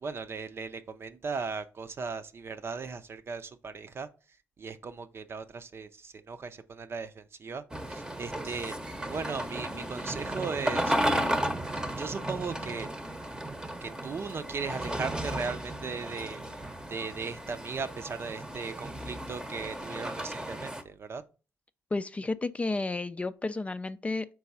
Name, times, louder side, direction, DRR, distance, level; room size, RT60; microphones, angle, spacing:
voice 1, 0.0-4.1 4.6-8.8 9.1-11.0 11.8-12.9 13.8-16.4 16.9-21.2, right 5 dB, 45° right, 0.7 m, -37 dB
sound 1, 7.7-20.8, right 1 dB, 10° right, 0.9 m, -34 dB
voice 2, 21.9-24.3, left 3 dB, 20° left, 0.4 m, -32 dB
4.7 x 4.0 x 5.4 m
cardioid pair, 75°, 6 cm